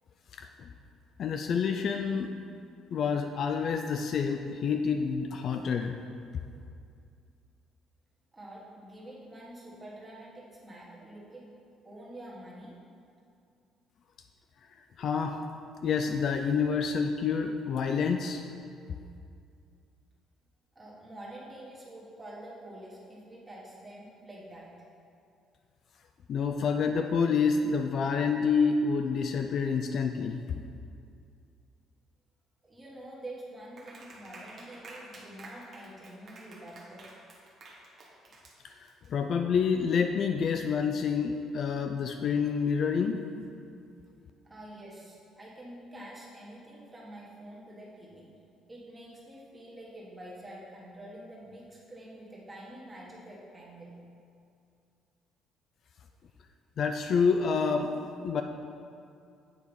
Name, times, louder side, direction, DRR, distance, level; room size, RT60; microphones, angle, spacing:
voice 1, 0.3-0.7 1.2-2.3 2.9-5.9 15.0-15.4 15.8-18.4 26.3-30.4 38.6-43.2 56.8-58.4, left 5 dB, 40° left, 6 dB, 0.3 m, -28 dB
voice 2, 8.3-11.5 11.8-12.8 20.7-24.9 32.6-37.0 44.4-48.3 48.7-53.9, right 1 dB, 15° right, -5 dB, 1.4 m, -47 dB
Clapping, 33.8-39.1, right 2 dB, 30° right, 1.1 m, -50 dB
8.7 x 4.6 x 5.3 m, 2.5 s
cardioid pair, 175°, 0 cm